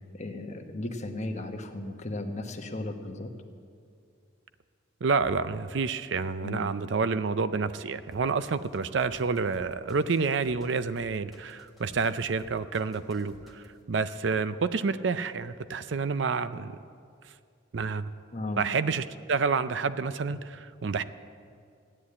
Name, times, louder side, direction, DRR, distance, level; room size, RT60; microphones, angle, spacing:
voice 1, 0.1-3.3 6.4-6.7 18.3-18.7, left 2 dB, 35° left, 5 dB, 1.1 m, -35 dB
voice 2, 5.0-16.7 17.7-18.1 18.6-21.0, right 4 dB, 65° right, 13 dB, 0.5 m, -29 dB
sound 1, 8.1-13.8, left 1 dB, ahead, 1.6 m, -55 dB
15.0 x 9.9 x 8.5 m, 2.3 s
head